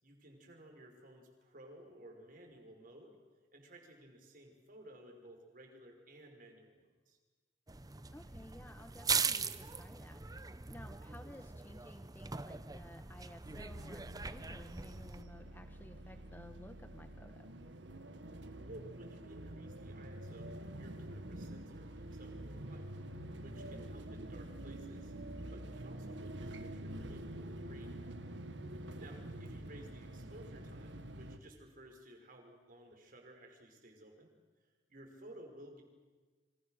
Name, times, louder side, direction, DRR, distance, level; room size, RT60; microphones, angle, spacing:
voice 1, 0.0-3.2 3.5-7.2 18.3-22.9 23.4-25.1 25.5-28.0 29.0-34.3 34.6-35.8, right 1 dB, 50° right, 2 dB, 5.5 m, -56 dB
sound 1, 7.7-15.2, right 5 dB, 20° right, 0.8 m, -40 dB
voice 2, 8.1-10.3 10.7-17.5 23.7-23.8 29.1-29.2, left 1 dB, 10° left, 8 dB, 1.0 m, -55 dB
sound 2, 13.4-31.4, right 1 dB, 80° right, 1.6 m, -47 dB
28.5 x 26.0 x 6.5 m, 1.4 s
head